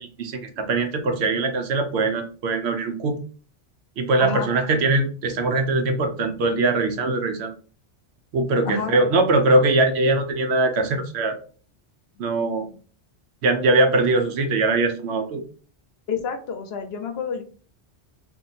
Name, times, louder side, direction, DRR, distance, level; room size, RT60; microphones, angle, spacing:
voice 1, 0.0-3.2 4.0-7.5 8.3-11.4 12.2-12.7 13.4-15.4, right 2 dB, 70° right, 6 dB, 0.9 m, -21 dB
voice 2, 4.2-4.5 8.7-9.1 12.5-12.8 16.1-17.4, left 5 dB, 70° left, 6 dB, 0.8 m, -30 dB
2.8 x 2.5 x 3.9 m, 0.40 s
omnidirectional pair, 1.2 m